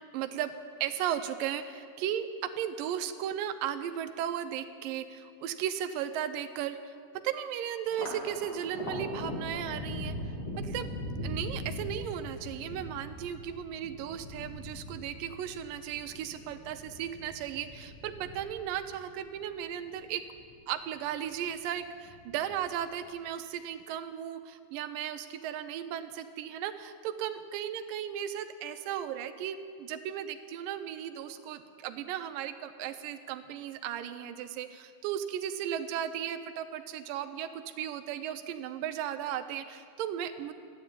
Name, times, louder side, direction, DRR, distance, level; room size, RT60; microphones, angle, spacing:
voice 1, 0.1-0.5 0.8-6.9 7.2-10.9 11.2-20.2 20.7-40.5, right 10 dB, 80° right, 9 dB, 2.1 m, -36 dB
Thunder, 7.8-20.5 20.9-21.7 22.0-22.9, left 1 dB, 40° left, 3.0 m, -41 dB
13.5 x 10.0 x 8.7 m, 2.2 s
omnidirectional pair, 4.3 m